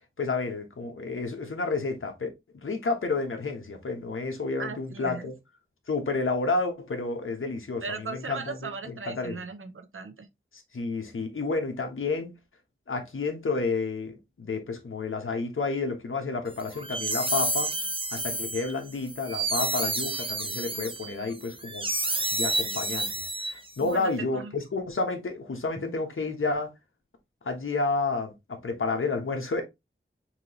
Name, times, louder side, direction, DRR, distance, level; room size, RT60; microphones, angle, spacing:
voice 1, 0.2-5.3 5.9-7.8 8.1-8.6 8.9-9.4 10.5-12.4 12.9-17.7 18.1-21.9 22.3-26.7 27.4-29.6, left 3 dB, 85° left, 1.1 m, -30 dB
voice 2, 4.6-5.3 7.8-10.3 23.8-24.5, right 4 dB, 85° right, 0.9 m, -37 dB
sound 1, 16.6-23.9, right 2 dB, 25° right, 0.7 m, -30 dB
5.9 x 2.9 x 2.8 m
wide cardioid pair, 65°, 20 cm